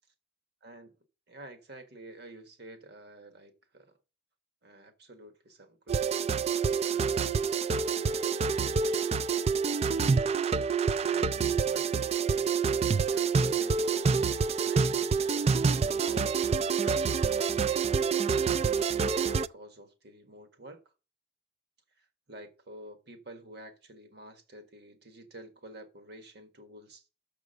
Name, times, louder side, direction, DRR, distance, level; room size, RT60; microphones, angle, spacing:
voice 1, 1.3-4.0 4.6-8.0 8.6-9.5 9.8-10.6 11.0-18.7 19.2-20.8 22.0-27.0, right 1 dB, 65° right, 1.5 m, -50 dB
sound 1, 5.9-19.5, right 5 dB, 35° right, 0.3 m, -27 dB
6.5 x 6.0 x 6.4 m
head